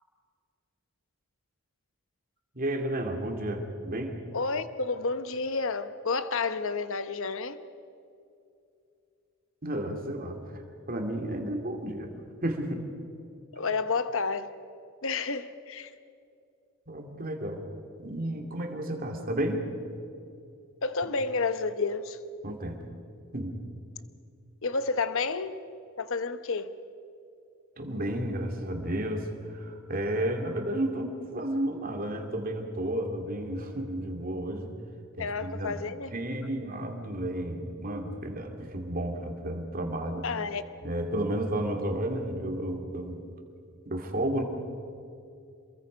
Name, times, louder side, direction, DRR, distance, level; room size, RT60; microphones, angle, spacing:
voice 1, 2.5-4.2 9.6-10.6 10.9-12.1 12.4-12.8 16.9-17.7 18.0-19.7 22.4-22.9 23.3-23.6 27.8-34.7 35.2-35.8 36.1-40.3 40.8-43.2 43.9-44.4, right 1 dB, 40° right, 2.5 m, -32 dB
voice 2, 4.3-7.6 13.5-14.5 15.0-15.9 20.8-22.2 24.6-25.6 26.0-26.8 35.2-36.1 40.2-40.6, left 4 dB, 60° left, 1.0 m, -30 dB
27.5 x 22.0 x 5.2 m
head